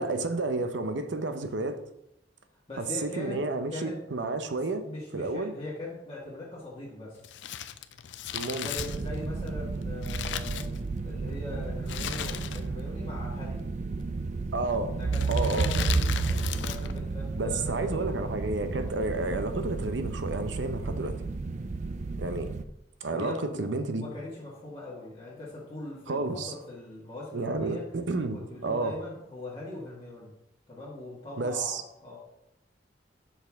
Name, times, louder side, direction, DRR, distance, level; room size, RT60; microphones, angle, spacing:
voice 1, 0.0-1.8 2.8-4.8 5.1-5.5 8.3-8.7 14.5-14.9 15.3-15.7 17.3-21.2 22.2-22.5 23.0-24.1 26.1-26.5 27.3-29.0 31.4-31.8, right 3 dB, 75° right, 0.7 m, -31 dB
voice 2, 2.7-3.4 3.7-4.0 4.8-7.2 8.6-10.7 11.0-13.6 15.0-18.1 18.7-18.9 23.1-27.9 28.3-30.3 30.7-32.2, left 2 dB, 30° left, 1.6 m, -41 dB
Crumpling crinkling, 7.2-11.2 11.8-12.9 13.1-13.2 14.1-14.4 15.1-17.0 17.2-17.3, left 10 dB, 70° left, 0.4 m, -37 dB
sound 1, 8.8-22.6, right 3 dB, 40° right, 0.4 m, -32 dB
6.8 x 5.8 x 3.5 m
head